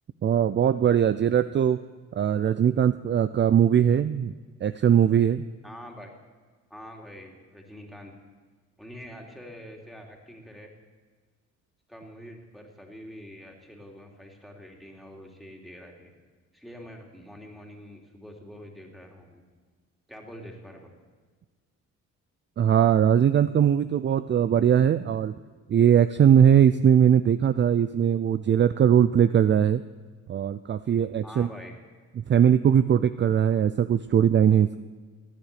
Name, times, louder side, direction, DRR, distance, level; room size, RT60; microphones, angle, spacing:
voice 1, 0.2-1.8 2.1-4.3 4.6-5.4 22.6-25.3 25.7-29.8 30.3-31.5 32.2-34.8, right 9 dB, 40° right, 13 dB, 0.5 m, -20 dB
voice 2, 5.6-6.1 6.7-8.1 8.8-10.7 11.9-16.1 16.5-19.4 20.1-20.9 31.2-31.7, equal, ahead, 0 dB, 2.9 m, -45 dB
16.0 x 9.4 x 8.4 m, 1.5 s
cardioid pair, 90°, 30 cm